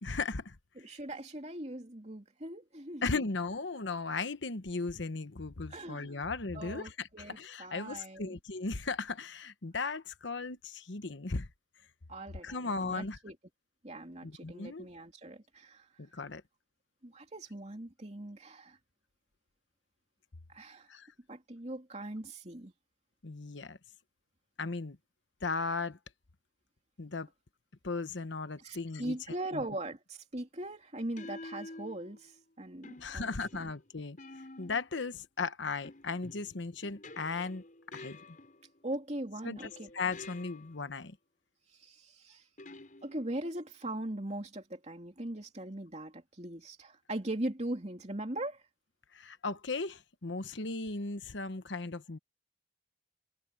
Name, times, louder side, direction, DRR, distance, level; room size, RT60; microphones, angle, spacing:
voice 1, 0.0-0.6 3.0-11.5 12.4-13.2 14.2-14.9 16.0-16.4 20.9-21.1 23.2-23.8 24.6-25.0 25.4-26.0 27.0-27.3 27.8-29.2 29.5-29.6 33.0-34.2 34.6-37.6 37.9-38.4 39.4-41.2 49.1-52.2, left 4 dB, 70° left, 1.1 m, -36 dB
voice 2, 0.8-3.1 5.7-6.2 6.5-8.4 12.1-13.4 13.8-15.9 17.0-18.8 20.5-20.9 21.3-22.7 28.6-33.7 38.8-39.9 41.7-42.4 43.0-48.6, right 1 dB, 35° right, 2.9 m, -40 dB
sound 1, 29.1-29.4 31.2-32.4 32.8-35.0 35.8-38.8 39.6-40.9 42.6-43.5, left 2 dB, 45° left, 6.0 m, -50 dB
head